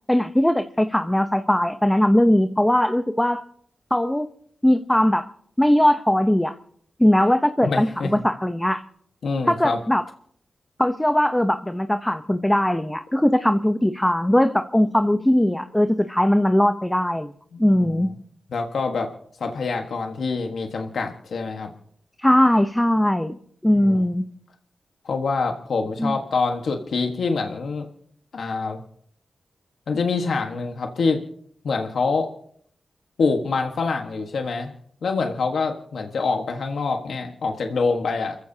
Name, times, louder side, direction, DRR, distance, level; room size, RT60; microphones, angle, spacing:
voice 1, 0.1-3.4 3.9-4.3 4.6-5.3 5.6-6.5 7.0-8.8 9.5-10.0 10.8-17.3 17.6-18.1 22.2-23.4 23.6-24.3 26.0-26.1, left 1 dB, 10° left, 8 dB, 0.8 m, -20 dB
voice 2, 7.6-8.1 9.2-9.8 17.5-17.9 18.5-19.1 19.4-21.7 23.8-23.9 25.0-27.9 28.3-28.8 29.9-31.2 31.6-32.3 33.2-34.7 35.0-38.4, left 4 dB, 80° left, 3 dB, 1.5 m, -25 dB
29.5 x 15.0 x 2.8 m, 0.64 s
cardioid pair, 60°, 0 cm